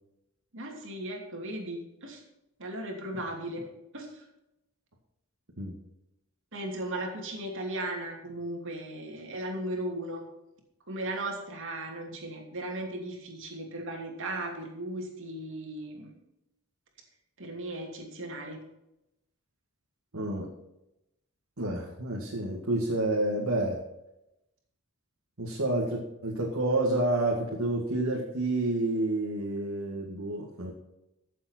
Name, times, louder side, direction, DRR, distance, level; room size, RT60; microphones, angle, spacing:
voice 1, 0.5-2.2 2.6-3.6 3.9-4.2 6.5-10.2 10.9-16.1 17.4-18.6, right 1 dB, 65° right, 2 dB, 2.8 m, -36 dB
voice 2, 20.1-20.5 21.6-23.8 25.4-30.7, right 2 dB, 80° right, -3 dB, 2.1 m, -29 dB
14.5 x 7.5 x 4.5 m, 0.89 s
head